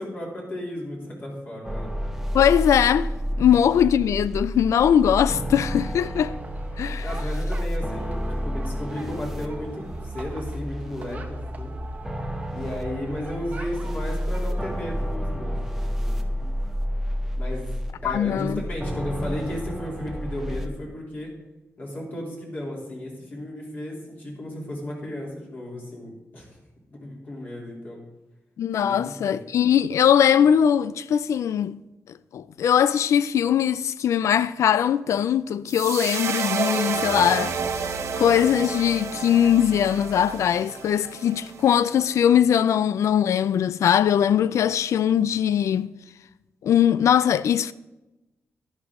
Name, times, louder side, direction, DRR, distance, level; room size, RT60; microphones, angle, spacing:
voice 1, 0.0-1.9 3.4-3.5 7.0-11.7 12.5-16.2 17.4-17.7 18.0-21.3 21.8-26.5 26.9-28.0 28.8-29.4, left 1 dB, 35° left, 3.0 m, -34 dB
sound 1, 1.6-20.7, equal, 5° right, 0.9 m, -30 dB
voice 2, 2.3-3.1 3.4-6.3 6.8-7.1 18.0-18.6 28.6-31.8 32.3-37.5 38.2-45.9 46.6-47.7, left 9 dB, 85° left, 0.3 m, -21 dB
sound 2, 5.6-14.7, right 3 dB, 30° right, 1.1 m, -44 dB
sound 3, 35.7-42.0, right 5 dB, 85° right, 1.1 m, -30 dB
11.0 x 11.0 x 3.6 m
wide cardioid pair, 170°, 5 cm